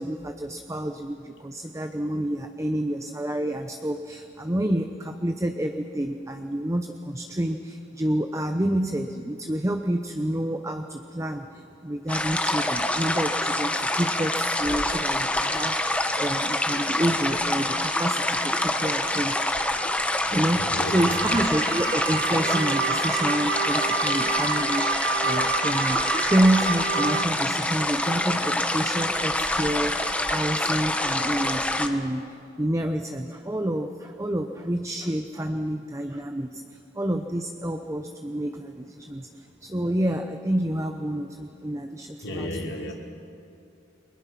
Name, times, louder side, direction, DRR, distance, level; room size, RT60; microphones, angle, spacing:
voice 1, 0.0-19.3 20.2-20.6 20.9-42.5, right 1 dB, 15° right, 6 dB, 0.8 m, -28 dB
sound 1, 12.1-31.9, left 1 dB, 5° left, 1.1 m, -26 dB
voice 2, 20.5-21.4 42.2-42.9, left 1 dB, 80° left, 1 dB, 3.4 m, -33 dB
sound 2, 20.9-27.2, right 5 dB, 85° right, 0.9 m, -29 dB
30.0 x 22.5 x 5.9 m, 2.6 s
head